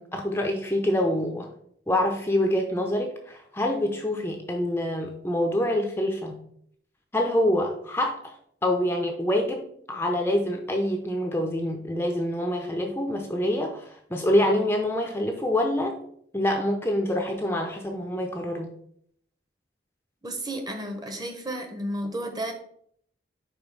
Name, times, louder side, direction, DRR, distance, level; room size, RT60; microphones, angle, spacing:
voice 1, 0.0-1.5 1.9-6.4 7.1-8.3 8.6-16.0 16.3-18.7, left 1 dB, 10° left, 3 dB, 0.6 m, -26 dB
voice 2, 20.2-22.5, right 1 dB, 20° right, 5 dB, 1.0 m, -32 dB
5.3 x 4.5 x 6.0 m, 0.66 s
head